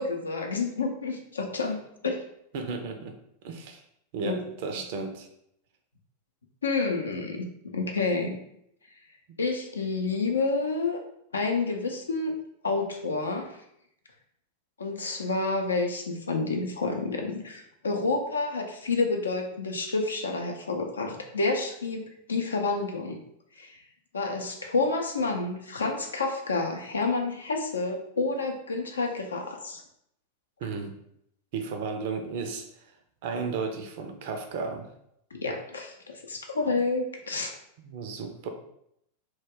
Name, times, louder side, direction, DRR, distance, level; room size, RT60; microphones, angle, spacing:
voice 1, 0.0-2.3 4.2-4.4 4.7-4.8 6.6-8.4 9.4-11.0 11.3-12.3 12.6-13.6 14.8-22.0 22.3-23.2 23.6-23.8 24.1-29.8 35.3-37.6, left 3 dB, 70° left, 3 dB, 0.4 m, -29 dB
voice 2, 2.5-3.1 3.4-3.8 4.1-5.3 30.6-31.0 31.5-32.7 33.2-34.9 37.8-38.5, right 4 dB, 50° right, 5 dB, 0.4 m, -34 dB
2.2 x 2.1 x 3.4 m, 0.75 s
figure-of-eight pair, 90°, 0 cm